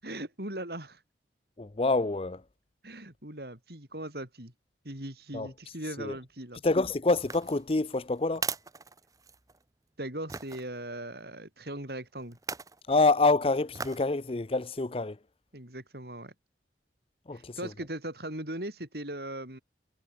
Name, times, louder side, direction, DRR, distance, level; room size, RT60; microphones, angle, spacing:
voice 1, 0.0-1.0 2.8-4.5 4.8-6.6 10.0-12.4 15.5-16.3 17.3-19.6, right 1 dB, 60° right, 6.5 m, -39 dB
voice 2, 1.6-2.4 5.3-5.5 6.0-6.2 6.6-8.5 12.9-15.2 17.3-17.7, left 3 dB, 35° left, 0.7 m, -27 dB
sound 1, 7.2-9.6 10.3-10.6 12.3-12.8 13.7-14.1 14.6-14.7, right 5 dB, 20° right, 1.0 m, -38 dB
head